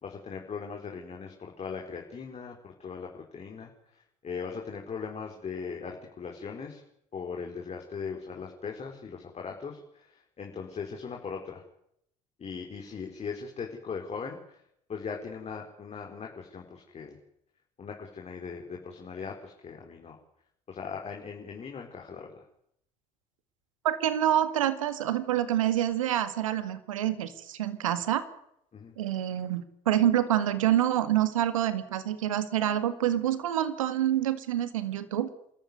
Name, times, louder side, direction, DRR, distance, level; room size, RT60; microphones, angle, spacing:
voice 1, 0.0-6.8 7.1-11.6 12.4-14.6 14.9-17.2 17.8-20.2 20.7-22.5 28.7-29.0, left 5 dB, 40° left, 1 dB, 4.4 m, -39 dB
voice 2, 23.8-28.2 29.0-35.3, right 11 dB, 90° right, 12 dB, 1.9 m, -27 dB
28.0 x 14.0 x 9.5 m, 0.74 s
hypercardioid pair, 65°, 17 cm